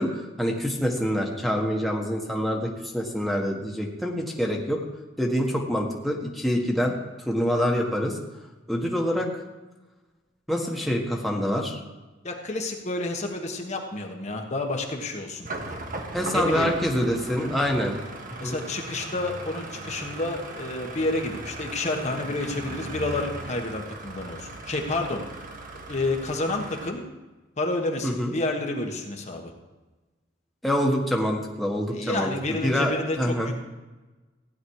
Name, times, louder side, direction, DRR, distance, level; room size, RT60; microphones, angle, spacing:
voice 1, 0.0-4.8 5.2-6.9 7.2-8.2 8.7-9.3 10.5-11.8 16.1-18.0 18.4-18.6 28.0-28.3 30.6-32.3 32.6-32.9 33.2-33.5, equal, ahead, -1 dB, 1.6 m, -26 dB
voice 2, 12.2-15.5 16.3-16.7 18.4-25.2 25.9-27.0 27.6-29.5 31.9-33.6, left 2 dB, 40° left, 2 dB, 1.4 m, -29 dB
sound 1, 15.5-26.9, right 2 dB, 45° right, 1.5 m, -38 dB
16.0 x 10.0 x 4.8 m, 1.2 s
head